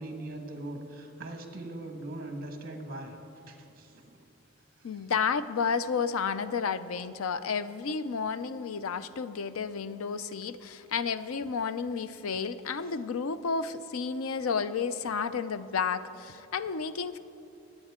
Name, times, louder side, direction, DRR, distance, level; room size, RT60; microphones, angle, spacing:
voice 1, 0.0-3.1 3.5-4.2 4.8-5.0, right 1 dB, 45° right, 3 dB, 1.6 m, -41 dB
voice 2, 4.8-17.2, left 5 dB, 85° left, 13 dB, 0.5 m, -31 dB
23.0 x 9.1 x 3.7 m, 2.8 s
head